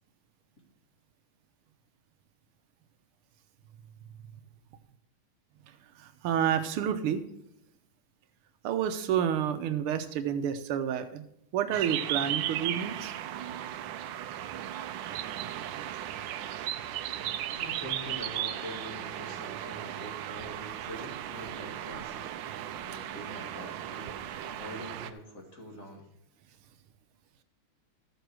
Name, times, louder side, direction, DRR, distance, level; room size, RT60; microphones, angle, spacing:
voice 1, 6.2-7.2 8.6-11.2 11.5-13.1, right 9 dB, 90° right, 10 dB, 1.7 m, -29 dB
sound 1, 11.7-25.1, right 11 dB, 75° right, 1.2 m, -36 dB
voice 2, 17.5-22.3 22.7-26.1, equal, 40° left, -1 dB, 2.3 m, -44 dB
13.0 x 6.7 x 4.6 m, 0.75 s
omnidirectional pair, 2.3 m